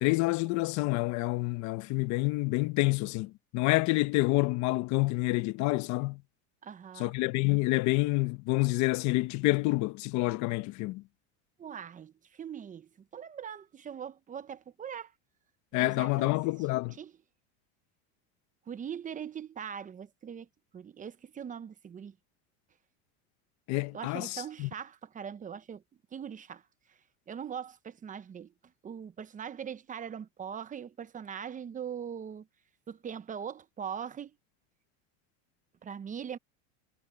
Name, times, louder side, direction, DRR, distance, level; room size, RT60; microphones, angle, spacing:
voice 1, 0.0-6.2 7.0-11.0 15.7-16.9 23.7-24.7, left 21 dB, 55° left, 1.2 m, -28 dB
voice 2, 6.6-7.1 11.6-15.1 15.7-16.4 17.0-17.1 18.7-20.5 20.7-22.2 23.9-25.8 26.1-26.6 26.9-27.0 27.3-28.5 28.8-32.5 32.9-34.4 35.8-36.4, right 8 dB, 25° right, 1.0 m, -41 dB
supercardioid pair, 130°, 33 cm